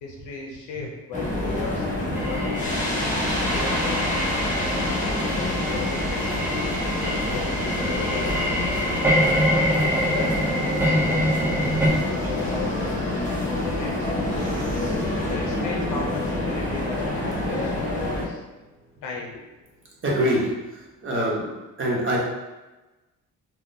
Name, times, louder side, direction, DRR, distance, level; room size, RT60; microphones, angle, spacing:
voice 1, 0.0-4.5 5.3-6.6 6.9-8.6 9.5-11.3 11.6-14.5 15.3-18.4 19.0-19.4, left 4 dB, 85° left, 0 dB, 0.6 m, -36 dB
sound 1, 1.1-18.2, left 1 dB, 25° left, 0.9 m, -27 dB
sound 2, 2.1-11.9, equal, 10° right, 0.7 m, -26 dB
sound 3, 11.4-19.8 20.1-20.8, equal, 5° left, 1.1 m, -38 dB
voice 2, 11.7-12.0 20.0-20.4 21.0-21.5 21.8-22.2, equal, 40° right, -4 dB, 1.0 m, -24 dB
3.4 x 2.3 x 2.7 m, 1.1 s
cardioid pair, 90°, 30 cm